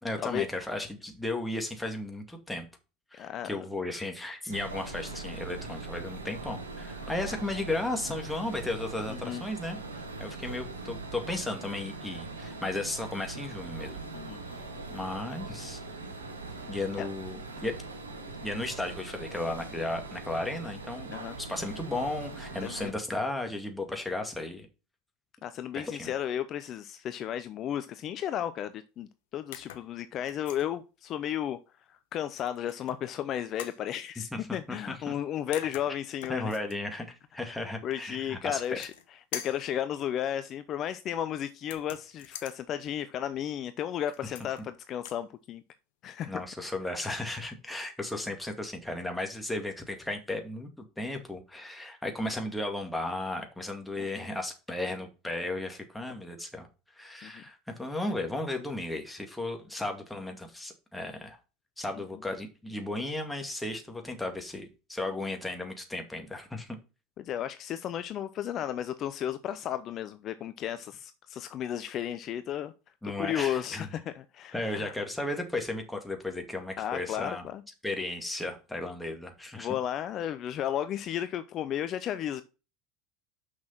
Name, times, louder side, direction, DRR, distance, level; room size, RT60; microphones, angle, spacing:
voice 1, 0.0-2.7 3.1-14.0 14.9-15.8 16.7-17.8 18.4-21.1 21.4-24.7 25.7-26.1 34.5-35.1 36.3-38.9 46.3-56.7 57.0-61.4 61.8-66.8 73.0-73.9 74.5-77.4 77.8-79.8, left 2 dB, 5° left, 2.3 m, -35 dB
voice 2, 3.2-3.6 9.1-9.4 14.1-14.4 17.0-17.1 21.1-21.4 22.6-22.9 25.4-31.6 31.9-36.5 37.4-38.9 39.3-45.6 46.0-46.4 54.0-54.3 57.2-57.4 67.2-72.7 73.2-74.0 74.3-74.9 76.8-77.6 79.6-82.4, left 10 dB, 45° left, 0.6 m, -34 dB
sound 1, 4.5-22.9, right 3 dB, 90° right, 1.6 m, -41 dB
sound 2, 29.5-29.9 30.3-30.7 32.4-32.9 33.6-33.8 35.2-35.3 35.5-36.8 38.5-39.1 39.3-39.7 41.6-42.6 44.1-44.6 44.9-45.2, left 10 dB, 70° left, 1.0 m, -43 dB
6.3 x 6.0 x 5.7 m
hypercardioid pair, 75°, 0 cm